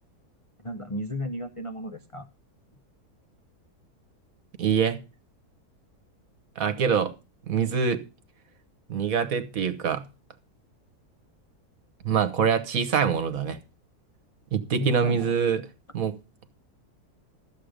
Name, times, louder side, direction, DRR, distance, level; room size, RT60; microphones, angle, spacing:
voice 1, 0.6-2.3 14.8-15.3, left 1 dB, 40° left, 0.5 m, -34 dB
voice 2, 4.6-5.0 6.6-7.1 7.5-8.0 8.9-10.0 12.0-13.6 14.5-15.6 15.9-16.2, right 6 dB, 60° right, 1.5 m, -24 dB
13.0 x 7.6 x 5.0 m
omnidirectional pair, 1.7 m